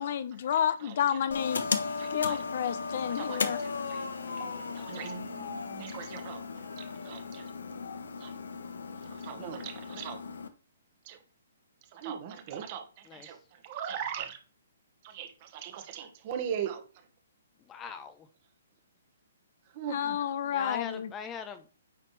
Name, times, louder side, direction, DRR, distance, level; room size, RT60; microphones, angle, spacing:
voice 1, 0.0-1.7 2.1-3.6 19.9-21.1, left 9 dB, 55° left, 0.7 m, -30 dB
sound 1, 1.3-10.5, left 4 dB, 80° left, 0.9 m, -36 dB
voice 2, 2.0-2.4 3.1-4.1 4.4-6.4 6.8-7.4 8.2-8.3 9.1-10.2 11.0-11.2 11.9-14.4 15.0-16.8 19.7-20.2, right 8 dB, 40° right, 1.4 m, -40 dB
voice 3, 4.2-4.7 13.1-13.3 17.7-18.3 20.5-21.7, left 7 dB, 20° left, 0.7 m, -42 dB
9.3 x 4.1 x 3.3 m
hypercardioid pair, 140°, 0 cm